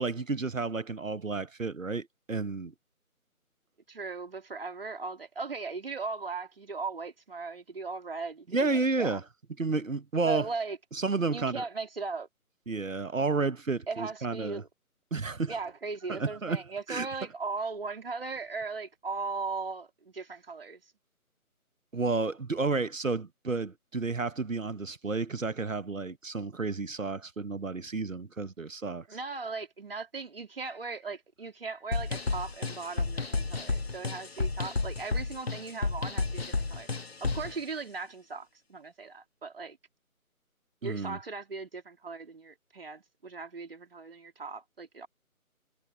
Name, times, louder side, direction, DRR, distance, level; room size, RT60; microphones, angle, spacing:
voice 1, 0.0-2.7 8.5-9.2 9.6-10.5 10.9-11.6 12.7-14.6 15.1-15.5 16.1-16.6 16.9-17.1 21.9-29.1 40.8-41.2, right 3 dB, 60° right, 1.4 m, -31 dB
voice 2, 3.9-9.2 10.2-10.8 11.3-12.3 13.9-14.7 15.5-20.8 29.1-36.9 37.2-39.8 40.8-45.1, right 4 dB, 40° right, 3.6 m, -38 dB
sound 1, 31.9-37.6, left 3 dB, 45° left, 1.8 m, -32 dB
figure-of-eight pair, 155°, 44 cm